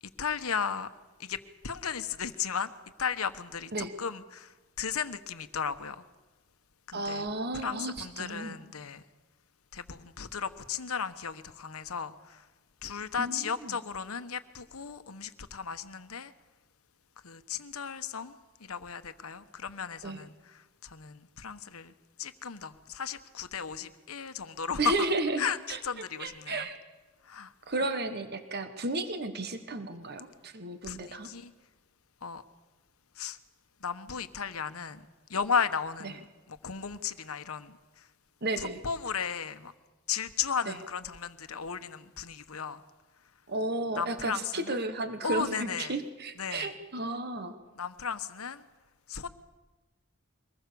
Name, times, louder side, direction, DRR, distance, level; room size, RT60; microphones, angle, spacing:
voice 1, 0.2-0.9 1.2-1.4 1.6-2.7 3.0-3.7 4.0-4.5 4.8-6.0 6.9-7.2 7.6-9.0 9.7-12.4 12.8-16.3 17.2-20.3 20.8-21.9 22.2-25.1 25.4-26.7 27.3-27.5 30.8-31.5 32.2-32.4 33.2-33.4 33.8-35.0 35.3-37.8 38.6-39.7 40.1-42.8 44.0-44.8 45.2-45.9 46.4-46.7 47.8-48.6 49.1-49.3, left 6 dB, 85° left, 1.1 m, -35 dB
voice 2, 6.9-8.6 13.2-13.8 20.0-20.2 24.8-25.8 26.2-26.8 27.7-31.3 36.0-36.1 38.4-38.8 40.6-40.8 43.5-47.5, right 2 dB, 50° right, 1.4 m, -33 dB
23.0 x 20.0 x 7.0 m
head